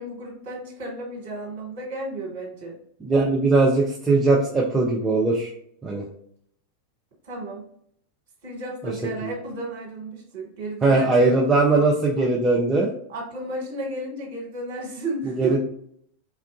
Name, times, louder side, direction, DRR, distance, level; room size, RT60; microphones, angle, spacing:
voice 1, 0.0-2.8 7.2-7.7 8.4-11.1 11.7-11.8 13.1-15.5, right 2 dB, 50° right, -3 dB, 1.2 m, -33 dB
voice 2, 3.1-5.5 5.8-6.0 10.8-12.9 15.4-15.6, right 3 dB, 15° right, -2 dB, 0.5 m, -20 dB
3.6 x 2.3 x 2.3 m, 0.67 s
figure-of-eight pair, 90°, 0 cm